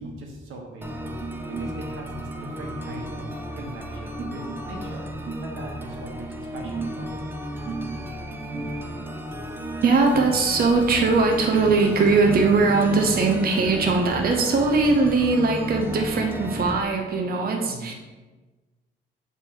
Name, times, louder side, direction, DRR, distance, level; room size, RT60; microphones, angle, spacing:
voice 1, 0.0-1.1 1.5-7.2 17.6-17.9, right 1 dB, 90° right, 1 dB, 1.3 m, -40 dB
sound 1, 0.8-16.8, equal, 10° right, 0.7 m, -34 dB
voice 2, 1.2-1.7 4.2-4.6 5.3-5.4 6.6-6.9 7.5-8.0 8.4-9.1 9.8-17.9, right 3 dB, 50° right, 2 dB, 0.8 m, -21 dB
7.6 x 3.4 x 4.6 m, 1.3 s
cardioid pair, 90°, 20 cm